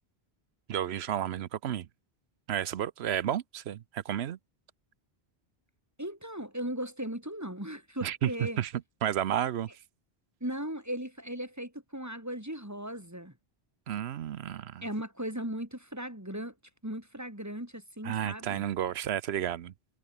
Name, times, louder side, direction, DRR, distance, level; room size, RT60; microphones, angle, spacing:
voice 1, 0.7-1.9 2.5-4.4 8.0-8.3 8.6-8.7 9.0-9.7 13.9-14.8 18.0-19.7, right 10 dB, 80° right, 1.0 m, -31 dB
voice 2, 6.0-8.6 10.4-13.3 14.8-16.5 16.8-18.6, right 1 dB, 15° right, 4.0 m, -37 dB
omnidirectional pair, 1.1 m